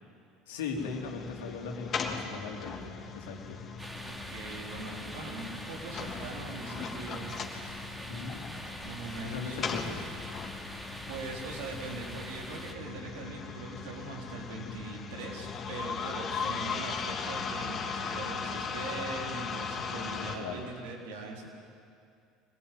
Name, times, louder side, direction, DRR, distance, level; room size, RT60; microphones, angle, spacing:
voice 1, 0.5-3.6 8.1-8.5 9.2-10.0 19.8-20.7, left 4 dB, 80° left, 1 dB, 3.1 m, -39 dB
sound 1, 0.7-20.4, left 5 dB, 40° left, 3.1 m, -38 dB
sound 2, 3.8-12.7, equal, 10° right, 2.8 m, -44 dB
voice 2, 4.0-7.3 8.8-9.6 11.1-21.5, right 3 dB, 75° right, 1 dB, 4.2 m, -41 dB
24.5 x 19.0 x 9.4 m, 2.4 s
hypercardioid pair, 75°, 0 cm